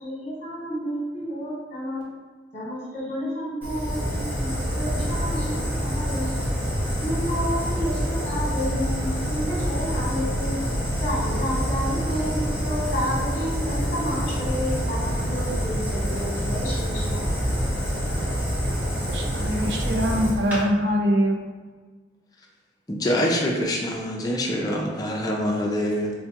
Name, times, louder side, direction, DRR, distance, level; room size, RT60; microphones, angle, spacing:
voice 1, 0.0-2.1 2.5-6.4 7.0-10.5 11.0-17.3, equal, 45° left, -7 dB, 1.1 m, -30 dB
Fire, 3.6-20.6, equal, 10° right, 0.7 m, -26 dB
voice 2, 19.1-21.4, equal, 70° right, 0 dB, 0.5 m, -23 dB
voice 3, 22.9-26.1, equal, 20° left, -1 dB, 0.4 m, -25 dB
4.5 x 2.2 x 2.8 m, 1.4 s
head